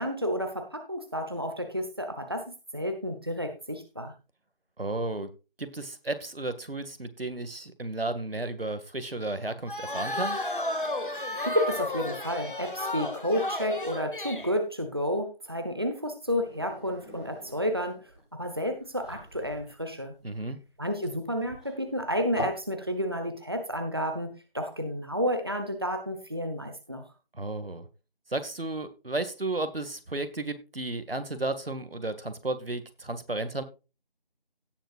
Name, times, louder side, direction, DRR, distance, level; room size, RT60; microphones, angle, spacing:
voice 1, 0.0-4.1 11.1-20.1 20.8-27.0, equal, 25° right, 6 dB, 1.1 m, -31 dB
voice 2, 4.8-5.3 5.6-10.4 20.2-20.6 27.3-27.9 28.3-33.6, right 2 dB, 75° right, 10 dB, 2.1 m, -33 dB
sound 1, 9.7-14.5, left 1 dB, 60° left, 2.3 m, -32 dB
sound 2, 16.2-22.7, left 1 dB, 5° left, 1.9 m, -42 dB
17.5 x 7.3 x 2.5 m, 0.29 s
figure-of-eight pair, 175°, 29 cm